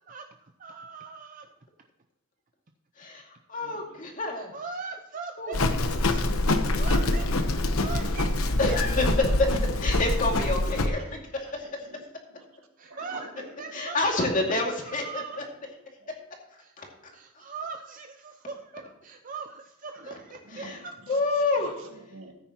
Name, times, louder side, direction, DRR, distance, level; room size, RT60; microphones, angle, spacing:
voice 1, 0.1-1.5 4.3-9.3 12.8-13.3 13.6-14.3 14.8-15.4 16.6-16.7 17.1-20.9, right 5 dB, 35° right, 5 dB, 0.5 m, -41 dB
voice 2, 3.0-4.5 5.4-5.8 6.1-6.3 8.6-9.0 9.8-11.9 13.7-15.2 16.8-16.9 20.1-20.2 20.5-20.8 21.1-21.7, left 2 dB, 35° left, 1 dB, 2.3 m, -29 dB
voice 3, 3.6-4.0 11.0-11.1 11.4-12.5 12.9-13.3 13.7-13.8 15.3-15.4 16.0-16.1 20.4-20.8 21.1-21.2 21.6-22.3, right 2 dB, 75° right, 3 dB, 1.9 m, -47 dB
Livestock farm animals working animals, 5.5-10.9, left 2 dB, 75° left, 1.0 m, -25 dB
14.0 x 9.3 x 3.0 m, 0.93 s
head